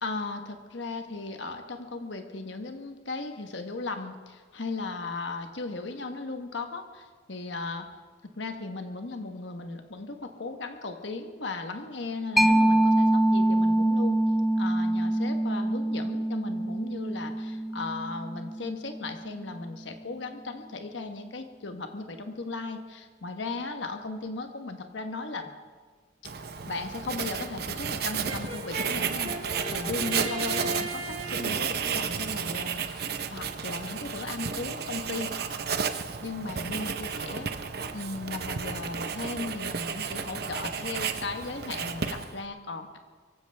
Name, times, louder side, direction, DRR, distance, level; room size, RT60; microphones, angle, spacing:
voice 1, 0.0-7.9 8.2-14.2 14.6-25.5 26.7-29.3 29.7-35.3 36.2-37.6 37.9-43.0, left 3 dB, 70° left, 6 dB, 1.1 m, -36 dB
Mallet percussion, 12.4-19.6, right 1 dB, ahead, 0.4 m, -25 dB
Writing, 26.2-42.5, right 6 dB, 55° right, 0.8 m, -33 dB
Brass instrument, 28.3-31.6, right 1 dB, 35° right, 2.1 m, -36 dB
23.5 x 15.5 x 3.4 m, 1.5 s
head